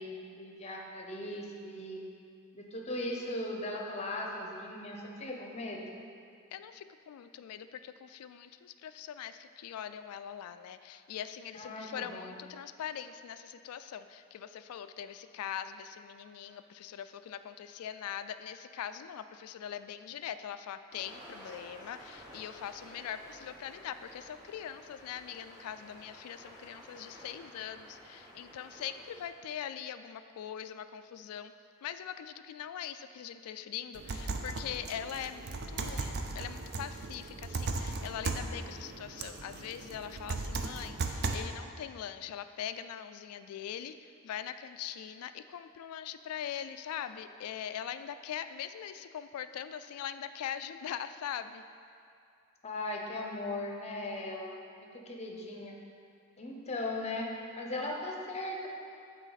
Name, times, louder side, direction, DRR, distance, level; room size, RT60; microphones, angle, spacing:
voice 1, 0.0-2.0 2.5-5.8 11.5-12.4 52.6-55.8 56.4-58.7, left 1 dB, 30° left, 0 dB, 0.7 m, -38 dB
voice 2, 6.5-31.5 31.8-51.6, left 9 dB, 85° left, 11 dB, 0.3 m, -42 dB
sound 1, 20.9-29.3, equal, 15° right, 0.9 m, -52 dB
sound 2, 33.9-41.4, right 3 dB, 45° right, 0.5 m, -37 dB
8.9 x 4.1 x 4.0 m, 2.5 s
head